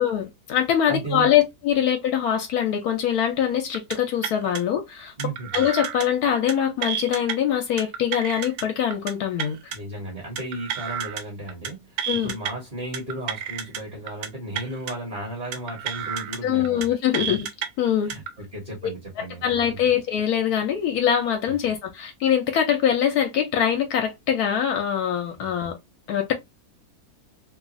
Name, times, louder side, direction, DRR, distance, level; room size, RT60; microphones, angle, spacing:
voice 1, 0.0-5.1 5.5-9.7 12.1-12.3 16.4-17.5 17.8-18.1 19.2-25.7 26.1-26.3, left 9 dB, 80° left, 1.1 m, -23 dB
voice 2, 0.9-1.3 5.2-5.6 9.7-16.8 17.3-17.4 18.0-19.4 19.8-19.9 21.5-21.6 25.4-25.5, right 2 dB, 30° right, 1.1 m, -35 dB
sound 1, 3.7-4.0 4.2-4.6 5.2-6.1 6.3-6.5 6.8-7.3 7.8-8.6 8.9-9.1 9.4-9.8 10.4-11.2 11.5-11.7 12.0-12.5 12.9-13.8 14.1-14.3 14.5-14.9 15.5-16.4 16.6-16.9 17.1-17.7 18.1-18.3, right 8 dB, 80° right, 1.1 m, -30 dB
3.0 x 2.3 x 2.5 m
omnidirectional pair, 1.6 m